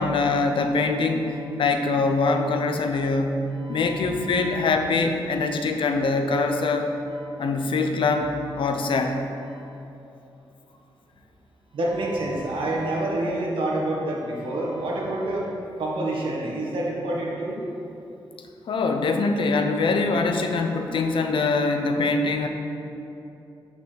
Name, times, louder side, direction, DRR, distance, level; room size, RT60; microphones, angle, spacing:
voice 1, 0.0-1.3 1.6-6.9 7.4-9.2 18.7-22.5, left 3 dB, 70° left, 5 dB, 0.7 m, -23 dB
voice 2, 3.6-4.7 7.1-7.2 11.7-15.5 15.8-17.6 20.6-20.7 20.9-21.0, right 1 dB, 75° right, -3 dB, 1.7 m, -28 dB
6.7 x 6.0 x 5.9 m, 2.8 s
cardioid pair, 80°, 9 cm